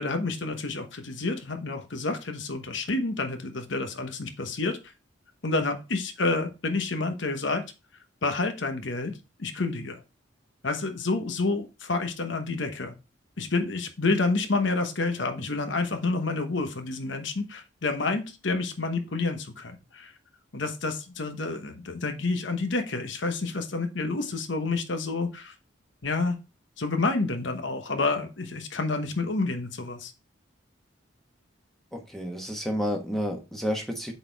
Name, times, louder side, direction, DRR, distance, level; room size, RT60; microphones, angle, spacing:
voice 1, 0.0-4.8 5.4-7.6 8.2-9.1 9.4-10.0 10.6-12.9 13.4-20.1 20.5-25.5 26.0-26.4 26.8-30.1, left 3 dB, 65° left, 7 dB, 1.1 m, -29 dB
voice 2, 31.9-34.1, equal, ahead, 2 dB, 1.2 m, -30 dB
7.9 x 4.2 x 3.4 m, 0.29 s
head